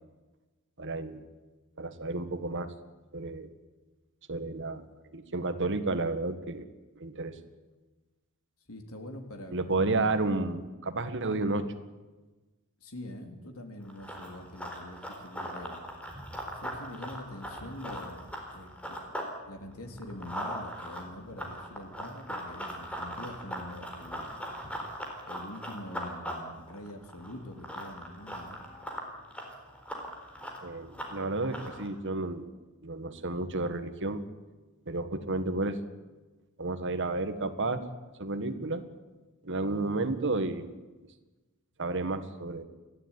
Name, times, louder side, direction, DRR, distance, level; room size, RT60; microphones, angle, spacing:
voice 1, 0.8-1.2 1.8-2.7 3.1-3.5 4.3-4.9 5.1-6.6 7.0-7.4 9.5-11.7 30.6-32.5 32.8-34.2 34.9-35.8 36.6-37.9 38.2-38.9 39.4-40.7 41.8-42.6, right 2 dB, 55° right, 9 dB, 1.8 m, -31 dB
voice 2, 8.7-10.1 12.8-15.8 16.5-19.2 19.5-24.3 25.2-28.6 39.7-40.0, left 1 dB, 70° left, 5 dB, 3.4 m, -44 dB
Run, 13.8-19.3 19.7-31.9, equal, 5° left, 4.1 m, -40 dB
29.5 x 12.5 x 9.8 m, 1.2 s
head